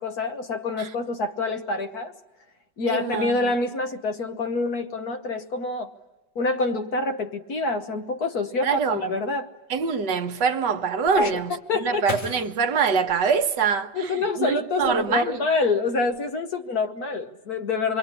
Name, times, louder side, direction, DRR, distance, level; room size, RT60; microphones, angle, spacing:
voice 1, 0.0-2.1 2.8-5.9 6.4-9.5 11.2-12.1 13.9-18.0, left 3 dB, 55° left, 1.7 m, -26 dB
voice 2, 2.9-3.5 8.6-9.0 9.7-15.4, right 6 dB, 70° right, 1.7 m, -24 dB
sound 1, 11.1-14.2 14.7-15.4 15.7-16.2, left 3 dB, 75° left, 3.0 m, -39 dB
27.0 x 22.5 x 9.8 m
omnidirectional pair, 2.0 m